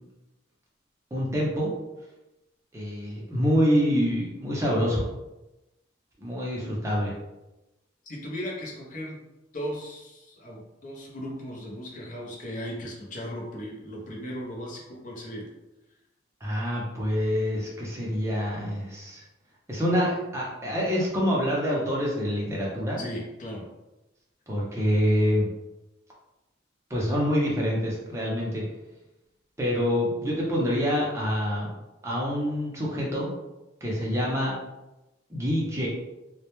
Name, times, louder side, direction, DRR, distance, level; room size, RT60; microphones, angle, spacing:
voice 1, 1.1-1.7 2.7-5.0 6.2-7.1 16.4-19.2 19.7-23.0 24.5-25.5 26.9-28.6 29.6-31.7 32.0-33.3 33.8-34.5 35.3-35.9, equal, 15° right, -4 dB, 0.5 m, -26 dB
voice 2, 8.0-9.2 9.5-15.5 23.0-23.7 34.1-34.3, equal, 40° left, -2 dB, 0.5 m, -37 dB
2.1 x 2.1 x 2.9 m, 0.99 s
head